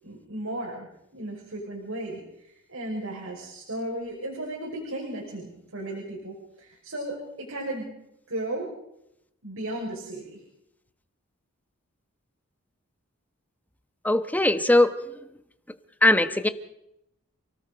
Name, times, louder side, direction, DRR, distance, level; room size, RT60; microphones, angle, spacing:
voice 1, 0.0-7.9 8.3-8.7 9.4-10.4, right 1 dB, 80° right, -2 dB, 5.8 m, -35 dB
voice 2, 14.0-15.1 16.0-16.5, left 1 dB, 10° left, 10 dB, 1.2 m, -20 dB
29.0 x 18.5 x 5.2 m, 0.80 s
head